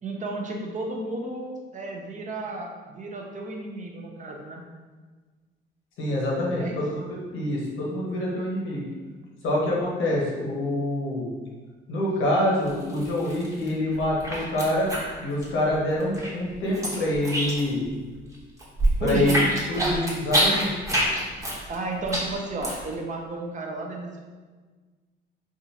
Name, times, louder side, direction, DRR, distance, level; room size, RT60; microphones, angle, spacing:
voice 1, 0.0-4.6 6.6-6.8 19.0-19.5 21.3-24.2, right 2 dB, 40° right, 1 dB, 0.6 m, -33 dB
voice 2, 6.0-6.9 7.3-8.8 9.4-11.3 11.9-14.9 15.2-17.9 19.0-19.4 19.7-21.0, left 1 dB, 85° left, -4 dB, 1.0 m, -26 dB
sound 1, 12.7-13.7 14.0-15.7 16.0-17.9 18.2-22.9, right 1 dB, 15° right, 1.0 m, -26 dB
3.5 x 2.5 x 2.8 m, 1.4 s
cardioid pair, 90°, 20 cm